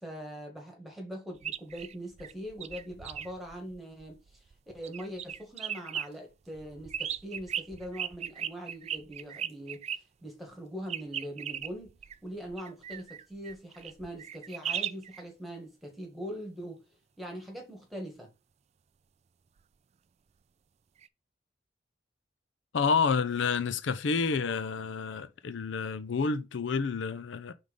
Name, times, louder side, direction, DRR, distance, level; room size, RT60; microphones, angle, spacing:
voice 1, 0.0-4.2 4.7-16.8 17.2-18.3, equal, ahead, 1.8 m, -42 dB
sound 1, 1.4-4.5 4.8-6.1 6.5-10.0 10.9-15.2 21.0-21.1, right 9 dB, 35° right, 0.3 m, -37 dB
voice 2, 22.7-27.5, left 5 dB, 75° left, 0.5 m, -29 dB
4.9 x 4.0 x 5.3 m
head